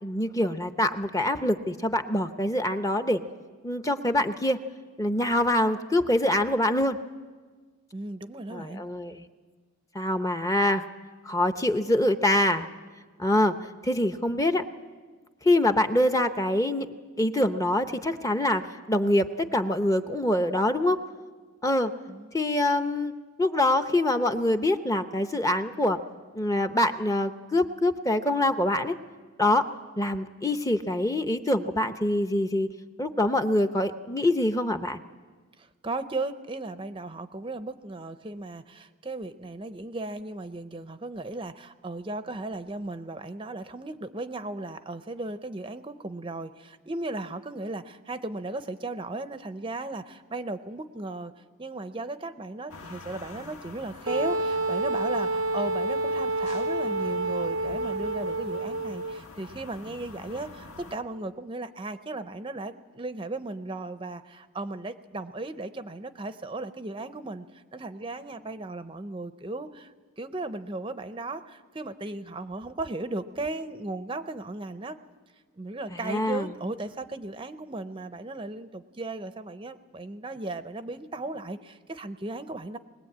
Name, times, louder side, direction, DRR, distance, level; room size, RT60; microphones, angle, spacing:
voice 1, 0.0-3.2 3.6-4.6 5.0-7.0 8.5-9.3 9.9-10.8 11.2-12.7 13.2-13.6 13.8-14.6 15.4-16.9 17.2-21.0 21.6-21.9 22.3-23.1 23.4-26.0 26.3-28.9 29.4-29.7 30.0-32.7 33.0-35.0 75.9-76.5, left 1 dB, 15° left, 9 dB, 0.7 m, -25 dB
voice 2, 7.9-8.8 22.1-22.3 35.6-51.3 51.6-75.0 75.6-82.8, right 2 dB, 25° right, 10 dB, 0.6 m, -36 dB
sound 1, 52.7-61.0, left 2 dB, 85° left, 1.4 m, -46 dB
Wind instrument woodwind instrument, 54.1-59.2, right 2 dB, 75° right, 0.6 m, -28 dB
21.5 x 20.5 x 8.6 m, 1.5 s
head